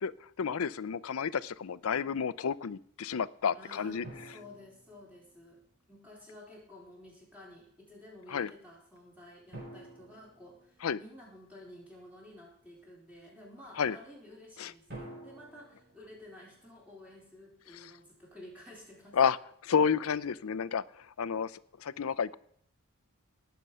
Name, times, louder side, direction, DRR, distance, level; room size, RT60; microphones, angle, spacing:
voice 1, 0.4-4.0 8.3-8.5 10.8-11.0 13.8-14.0 14.6-14.7 19.2-19.4 19.6-20.8 21.2-21.5 21.8-22.4, left 6 dB, 80° left, 17 dB, 0.5 m, -30 dB
voice 2, 3.5-5.6 5.9-19.2, left 1 dB, 5° right, -4 dB, 4.0 m, -52 dB
sound 1, 4.0-5.7 9.5-11.4 14.9-17.2, right 1 dB, 45° right, 7.0 m, -50 dB
18.5 x 6.9 x 5.5 m, 0.67 s
head